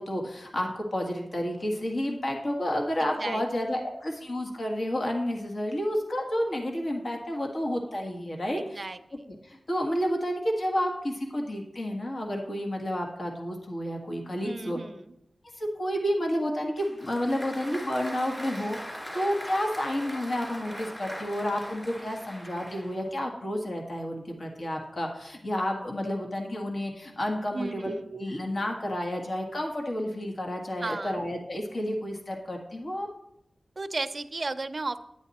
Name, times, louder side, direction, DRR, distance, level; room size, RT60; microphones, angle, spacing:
voice 1, 0.0-8.9 9.3-14.8 15.6-33.1, equal, 55° left, 1 dB, 1.7 m, -30 dB
voice 2, 3.0-3.4 8.6-9.0 14.4-15.1 27.5-28.1 30.8-31.1 33.8-35.0, right 3 dB, 45° right, 10 dB, 0.5 m, -34 dB
Applause, 16.8-23.1, equal, 15° left, 3.0 m, -41 dB
9.9 x 9.3 x 4.2 m, 0.82 s
wide cardioid pair, 110°, 0 cm